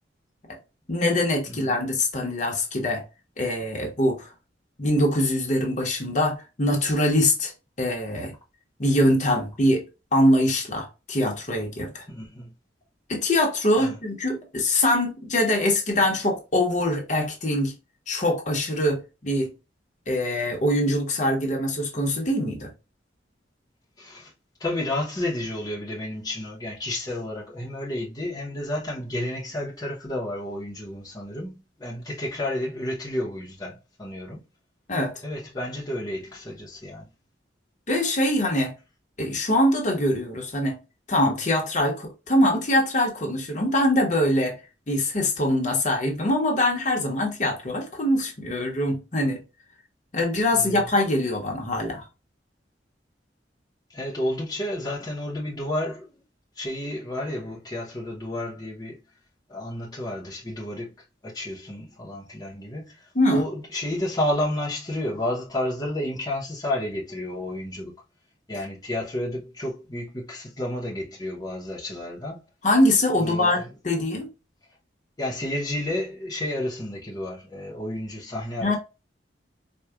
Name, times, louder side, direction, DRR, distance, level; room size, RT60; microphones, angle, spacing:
voice 1, 0.9-3.0 3.4-4.3 4.8-7.5 7.8-8.3 8.8-9.8 10.1-12.0 13.1-17.7 18.1-19.5 20.1-22.7 34.9-35.1 37.9-38.7 39.2-40.8 41.1-44.5 44.9-49.4 50.1-52.1 63.1-63.4 72.6-74.3 78.6-78.8, left 1 dB, 45° left, 1.0 m, -23 dB
voice 2, 1.5-1.8 12.1-12.5 13.8-14.0 24.0-24.3 24.6-34.4 35.2-37.1 50.5-50.9 53.9-56.2 56.6-59.0 59.5-60.9 61.2-67.9 68.5-72.4 73.2-73.7 75.2-78.8, left 1 dB, 20° left, 0.9 m, -31 dB
4.4 x 2.4 x 2.4 m
head